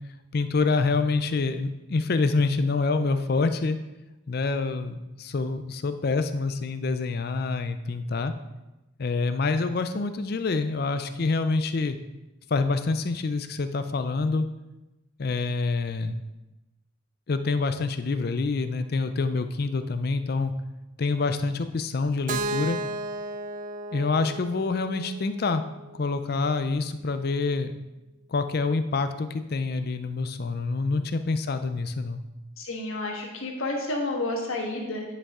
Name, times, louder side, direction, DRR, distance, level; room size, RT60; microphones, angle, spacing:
voice 1, 0.3-3.8 4.3-8.3 9.0-12.0 12.5-14.4 15.2-16.2 17.3-20.5 21.0-22.8 23.9-25.6 25.9-27.7 28.3-32.2, left 3 dB, 50° left, 10 dB, 0.4 m, -26 dB
Keyboard (musical), 22.3-26.2, right 2 dB, 40° right, 0.3 m, -34 dB
voice 2, 32.6-35.0, left 2 dB, 85° left, 0 dB, 1.4 m, -30 dB
9.9 x 5.3 x 3.7 m, 1.0 s
head